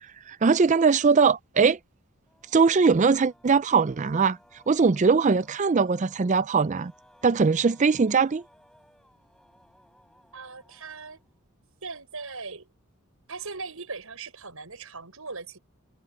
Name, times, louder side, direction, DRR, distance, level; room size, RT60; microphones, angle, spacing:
voice 1, 0.3-1.8 2.5-4.4 4.7-6.9 7.2-8.4, right 5 dB, 35° right, 0.4 m, -21 dB
sound 1, 2.2-11.6, equal, 5° left, 7.1 m, -59 dB
voice 2, 10.3-11.2 11.8-12.7 13.3-15.6, right 4 dB, 75° right, 5.9 m, -39 dB
head